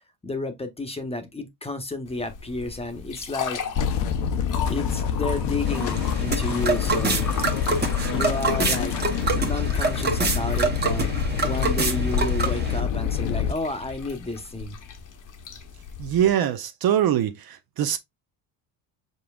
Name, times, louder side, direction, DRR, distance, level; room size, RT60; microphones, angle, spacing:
voice 1, 0.2-3.6 4.7-7.3 8.1-8.9 9.2-11.1 11.4-14.8, left 2 dB, 15° left, 0.9 m, -31 dB
sound 1, 2.1-16.3, left 6 dB, 45° left, 1.0 m, -37 dB
sound 2, 3.8-13.5, left 7 dB, 65° left, 0.9 m, -26 dB
sound 3, 5.7-12.8, right 4 dB, 20° right, 1.0 m, -27 dB
voice 2, 16.0-18.0, right 10 dB, 55° right, 0.7 m, -23 dB
5.3 x 3.8 x 2.3 m
cardioid pair, 105°, 44 cm